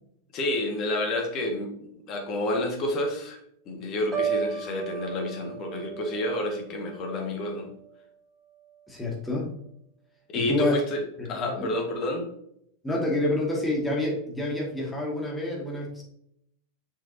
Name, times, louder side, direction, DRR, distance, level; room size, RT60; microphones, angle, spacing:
voice 1, 0.3-3.4 3.7-7.7 10.3-11.0 11.3-12.3, left 1 dB, 35° left, 2 dB, 1.8 m, -29 dB
Piano, 4.1-8.1 8.5-8.8, right 7 dB, 20° right, 2.3 m, -35 dB
voice 2, 8.9-9.5 10.3-10.8 11.2-11.7 12.8-16.0, left 1 dB, 10° left, -2 dB, 2.2 m, -28 dB
6.4 x 6.2 x 2.8 m, 0.74 s
figure-of-eight pair, 90°, 0 cm